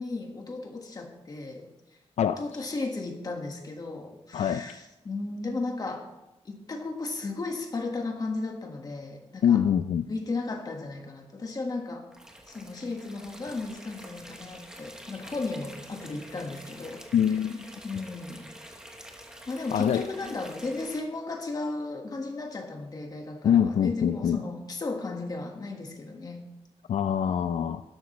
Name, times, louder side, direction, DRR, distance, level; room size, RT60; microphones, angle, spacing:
voice 1, 0.0-1.7 2.4-6.1 6.4-9.6 10.1-12.1 12.5-17.0 17.8-18.5 19.5-26.5, left 3 dB, 35° left, 1.5 m, -35 dB
voice 2, 4.3-4.7 9.4-10.1 17.1-17.7 19.7-20.1 23.4-24.4 26.9-27.8, left 8 dB, 80° left, 0.4 m, -24 dB
sound 1, 12.1-21.0, equal, 5° right, 1.1 m, -47 dB
12.5 x 12.0 x 3.2 m
wide cardioid pair, 180°, 11 cm